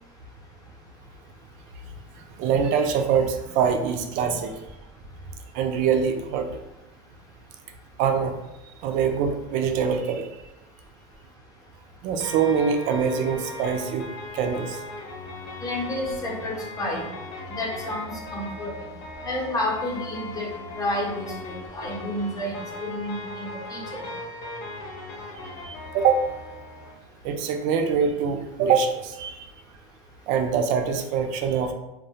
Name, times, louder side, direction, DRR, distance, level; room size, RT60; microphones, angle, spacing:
voice 1, 2.4-4.5 5.5-6.6 8.0-8.4 8.8-10.3 12.0-14.1 14.3-14.8 25.6-26.3 27.2-29.4 30.3-31.7, right 6 dB, 55° right, 5 dB, 0.4 m, -24 dB
sound 1, 12.2-26.9, left 2 dB, 60° left, 0.8 m, -38 dB
voice 2, 15.6-17.1 17.6-18.7 19.2-23.8, left 1 dB, 25° left, -3 dB, 0.7 m, -30 dB
2.2 x 2.1 x 2.7 m, 0.93 s
supercardioid pair, 120°, 16 cm